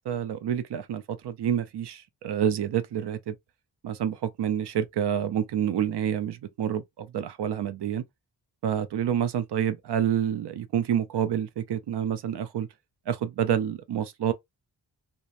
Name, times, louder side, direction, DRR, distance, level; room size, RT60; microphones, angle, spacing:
voice 1, 0.1-3.4 3.8-8.0 8.6-12.7 13.1-14.3, right 9 dB, 65° right, 0.6 m, -28 dB
3.0 x 2.1 x 2.4 m
wide cardioid pair, 135°, 43 cm